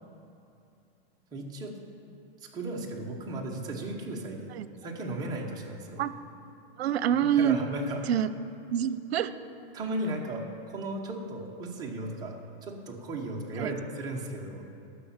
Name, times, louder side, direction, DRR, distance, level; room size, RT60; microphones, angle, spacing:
voice 1, 1.3-1.8 2.4-6.0 7.4-8.0 9.7-14.6, right 1 dB, 10° right, -1 dB, 1.0 m, -36 dB
voice 2, 6.8-7.6 8.1-8.3 8.7-9.3 13.6-13.8, right 9 dB, 85° right, 14 dB, 0.6 m, -26 dB
11.5 x 6.3 x 7.2 m, 2.7 s
supercardioid pair, 165°, 31 cm